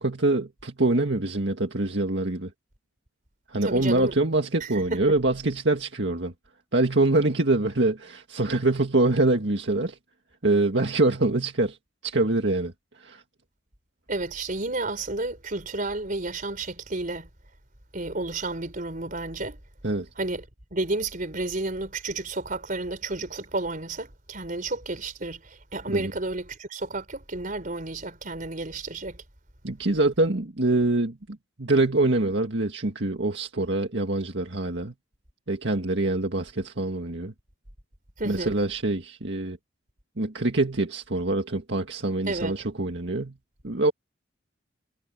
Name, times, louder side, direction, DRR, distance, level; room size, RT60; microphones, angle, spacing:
voice 1, 0.0-2.5 3.5-6.3 6.7-10.0 10.4-11.8 12.0-12.7 13.0-13.2 19.8-20.1 25.9-26.1 29.6-31.2 31.6-34.9 35.5-37.3 38.3-39.6 40.2-43.3 43.6-43.9, right 2 dB, 70° right, 1.9 m, -24 dB
voice 2, 3.6-4.1 4.6-5.0 14.1-17.3 17.9-19.6 20.2-20.4 20.7-29.2 38.2-38.5 42.3-42.6, right 2 dB, 45° right, 4.5 m, -31 dB
head